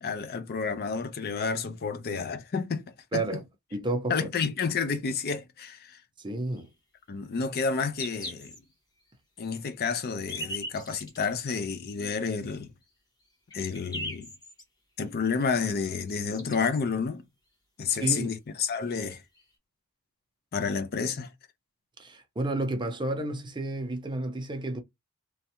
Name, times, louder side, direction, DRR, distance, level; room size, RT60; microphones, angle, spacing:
voice 1, 0.0-2.8 3.1-3.4 4.1-6.0 7.1-8.6 9.4-12.7 13.5-14.3 15.0-17.2 17.8-19.2 20.5-21.3, left 5 dB, 45° left, 0.4 m, -30 dB
voice 2, 3.7-4.1 6.2-6.7 17.9-18.3 22.0-24.8, right 2 dB, 20° right, 0.6 m, -31 dB
sound 1, 6.5-6.7 7.5-7.6 8.0-8.6 9.1-9.2 10.0-11.3 12.1-12.2 12.9-13.0 13.3-14.6 15.8-15.9 16.1-16.8 18.3-18.4 18.6-18.7 19.4-19.5, left 1 dB, 20° left, 1.1 m, -39 dB
3.2 x 2.2 x 2.8 m
head